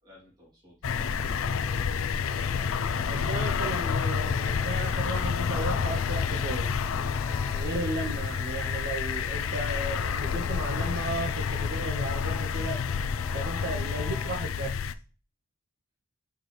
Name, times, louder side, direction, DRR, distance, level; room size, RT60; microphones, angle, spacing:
voice 1, 0.0-2.2 2.5-3.3, left 1 dB, 20° right, -5 dB, 2.8 m, -53 dB
sound 1, 0.8-14.9, left 6 dB, 90° left, 0.4 m, -29 dB
sound 2, 0.9-14.5, left 2 dB, 10° left, 0.9 m, -44 dB
voice 2, 3.1-6.8 7.5-12.9 13.3-14.8, right 2 dB, 55° right, 2 dB, 0.8 m, -35 dB
6.5 x 5.3 x 3.2 m, 0.36 s
head